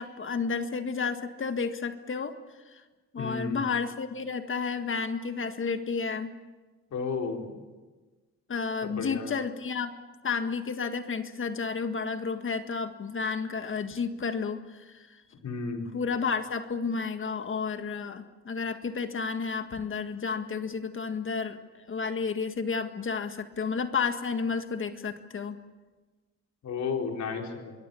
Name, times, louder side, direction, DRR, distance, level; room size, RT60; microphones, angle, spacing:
voice 1, 0.0-2.4 2.7-2.8 3.1-6.3 8.5-9.9 10.2-15.1 15.8-21.6 21.9-25.6, left 5 dB, 40° left, 8 dB, 1.7 m, -31 dB
voice 2, 3.2-3.6 6.9-7.5 8.8-9.3 15.4-15.9 26.6-27.7, left 5 dB, 65° left, 2 dB, 4.6 m, -33 dB
26.0 x 22.0 x 7.1 m, 1.3 s
cardioid pair, 90°, 30 cm